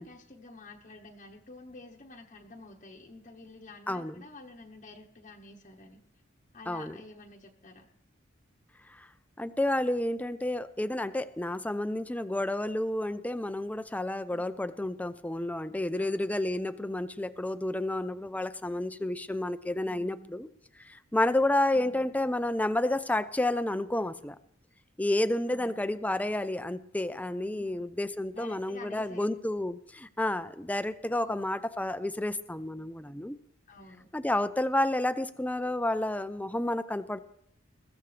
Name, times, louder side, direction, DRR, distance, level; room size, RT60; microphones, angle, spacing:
voice 1, 0.0-6.0 6.5-7.9 14.3-14.4 16.0-16.3 19.8-20.4 21.7-22.1 25.5-25.7 27.6-27.8 28.3-29.3 31.1-31.3 33.7-34.1, left 2 dB, 40° left, 0 dB, 1.1 m, -49 dB
voice 2, 3.9-4.2 6.7-7.0 8.9-9.1 9.4-20.5 20.8-24.4 25.0-33.4 34.1-37.2, left 1 dB, 10° left, 12 dB, 0.5 m, -30 dB
21.5 x 14.5 x 3.3 m, 0.74 s
head